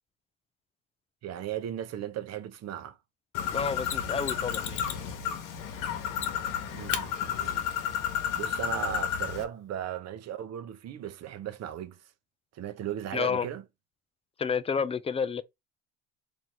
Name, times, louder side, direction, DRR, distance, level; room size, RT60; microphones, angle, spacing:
voice 1, 1.2-3.0 6.7-7.7 8.3-12.1 12.5-13.6, right 10 dB, 50° right, 0.7 m, -37 dB
Bird, 3.3-9.4, left 8 dB, 70° left, 0.9 m, -32 dB
voice 2, 3.5-4.9 13.1-13.5 14.4-15.4, left 6 dB, 20° left, 0.4 m, -30 dB
Mechanisms, 3.8-5.1 6.1-6.5 6.9-7.1 9.8-9.9, left 9 dB, 90° left, 0.7 m, -36 dB
3.0 x 2.7 x 4.4 m
hypercardioid pair, 70°, 33 cm